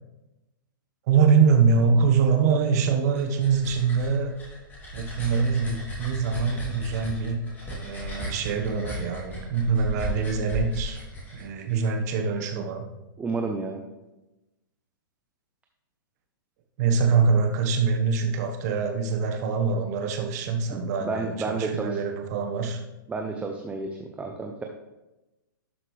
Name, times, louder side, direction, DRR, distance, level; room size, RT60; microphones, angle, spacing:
voice 1, 1.1-4.3 4.9-7.4 7.8-11.0 11.3-12.9 16.8-22.8, right 5 dB, 50° right, 5 dB, 1.3 m, -24 dB
sound 1, 2.9-11.9, equal, 15° left, 2.9 m, -36 dB
voice 2, 13.2-13.8 20.7-22.0 23.1-24.6, right 3 dB, 10° right, 2 dB, 0.6 m, -31 dB
11.5 x 5.9 x 3.3 m, 1.0 s
hypercardioid pair, 130°, 11 cm